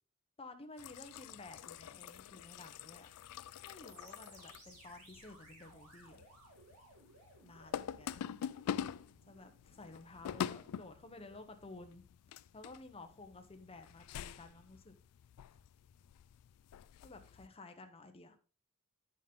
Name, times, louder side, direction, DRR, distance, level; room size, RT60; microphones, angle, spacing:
voice 1, 0.4-3.1 3.6-6.2 7.4-8.2 9.3-12.0 12.5-14.9 17.0-18.4, left 2 dB, 25° left, 7 dB, 0.9 m, -53 dB
sound 1, 0.8-17.5, left 9 dB, 85° left, 0.3 m, -46 dB
sound 2, 3.8-11.5, right 2 dB, 85° right, 2.9 m, -62 dB
9.1 x 5.4 x 3.6 m, 0.35 s
head